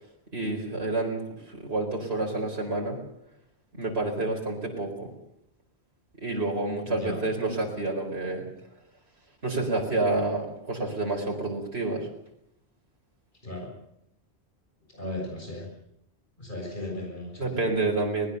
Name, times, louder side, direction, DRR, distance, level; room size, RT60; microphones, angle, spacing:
voice 1, 0.3-3.0 3.7-5.1 6.2-8.4 9.4-12.1 17.4-18.3, right 2 dB, 70° right, 0 dB, 4.7 m, -29 dB
voice 2, 6.8-7.2 13.4-13.7 14.9-15.7 16.4-17.6, left 1 dB, 50° left, 0 dB, 6.9 m, -36 dB
24.0 x 20.0 x 6.9 m, 0.77 s
omnidirectional pair, 1.1 m